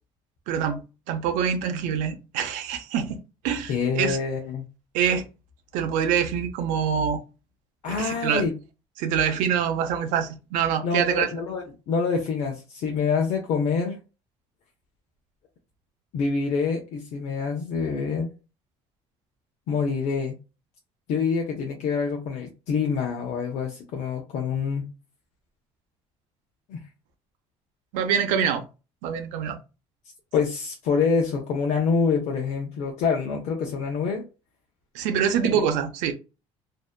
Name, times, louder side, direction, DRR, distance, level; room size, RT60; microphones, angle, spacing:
voice 1, 0.5-0.8 1.1-4.2 4.9-5.3 5.7-7.2 8.0-8.4 9.0-11.3 27.9-28.6 29.0-29.6 34.9-36.1, right 8 dB, 90° right, 0.6 m, -25 dB
voice 2, 3.7-4.7 7.8-8.6 10.8-14.0 16.1-18.3 19.7-20.4 21.1-24.9 26.7-26.8 30.3-34.3 35.4-35.7, left 5 dB, 65° left, 0.6 m, -26 dB
2.7 x 2.1 x 2.2 m
cardioid pair, 135°, 12 cm